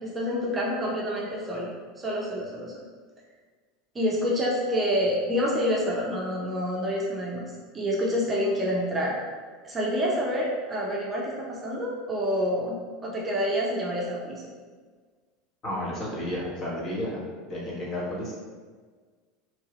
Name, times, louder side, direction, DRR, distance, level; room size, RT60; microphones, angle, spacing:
voice 1, 0.0-2.8 3.9-7.4 7.7-9.2 9.6-14.5, equal, 20° right, -4 dB, 0.6 m, -28 dB
voice 2, 15.6-17.2 17.5-18.3, left 1 dB, 35° left, -6 dB, 1.2 m, -32 dB
2.8 x 2.6 x 2.9 m, 1.5 s
supercardioid pair, 110°, 0 cm